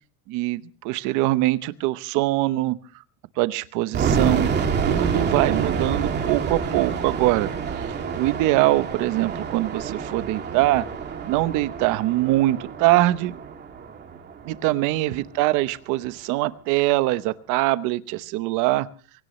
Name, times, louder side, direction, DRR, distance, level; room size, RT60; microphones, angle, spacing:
voice 1, 0.3-2.8 3.4-4.5 4.8-7.5 8.1-10.9 11.2-13.3 14.4-18.9, right 17 dB, 40° right, 14 dB, 0.9 m, -23 dB
sound 1, 3.9-14.8, right 6 dB, 20° right, 2.6 m, -28 dB
23.5 x 17.5 x 3.1 m, 0.44 s
supercardioid pair, 165°, 47 cm